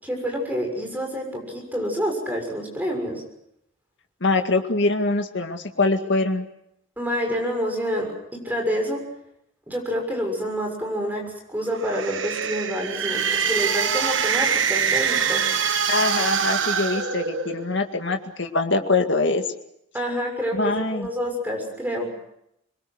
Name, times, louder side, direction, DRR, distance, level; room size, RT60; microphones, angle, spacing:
voice 1, 0.0-3.2 7.0-8.1 8.4-9.0 9.7-11.2 11.5-15.4 19.9-22.1, equal, 10° right, 1 dB, 6.8 m, -27 dB
voice 2, 4.2-6.5 15.9-19.4 20.5-21.1, left 3 dB, 60° left, 5 dB, 2.1 m, -23 dB
sound 1, 11.7-17.8, right 6 dB, 65° right, 1.4 m, -24 dB
25.5 x 22.5 x 6.4 m, 0.78 s
head